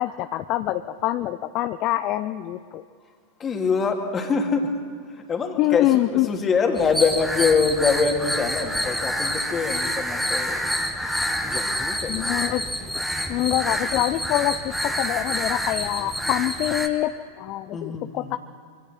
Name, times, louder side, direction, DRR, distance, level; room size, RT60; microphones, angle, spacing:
voice 1, 0.0-2.8 5.6-6.3 12.1-12.7 12.9-18.4, left 15 dB, 40° left, 12 dB, 0.6 m, -25 dB
voice 2, 3.4-4.7 5.1-10.6 11.4-12.3 17.7-18.4, left 5 dB, 20° left, 3 dB, 2.7 m, -24 dB
sound 1, 6.8-16.9, equal, ahead, 1.6 m, -27 dB
25.5 x 24.5 x 4.5 m, 2.1 s
figure-of-eight pair, 90°, 0 cm